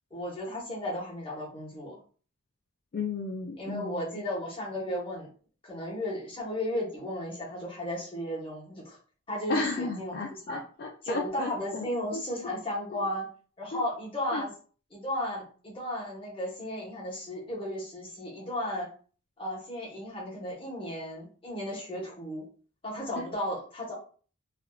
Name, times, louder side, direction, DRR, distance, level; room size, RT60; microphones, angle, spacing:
voice 1, 0.1-2.0 3.6-5.3 5.6-9.0 9.3-10.6 11.0-13.3 13.6-14.5 14.9-18.9 19.4-22.5 22.8-23.9, left 1 dB, 25° left, -5 dB, 1.0 m, -34 dB
voice 2, 2.9-4.0 9.5-11.8 12.1-12.6 12.9-13.1 13.7-13.8 14.3-14.4 23.2-23.3, left 3 dB, 45° left, 1 dB, 0.3 m, -34 dB
3.4 x 2.3 x 2.3 m, 0.42 s
head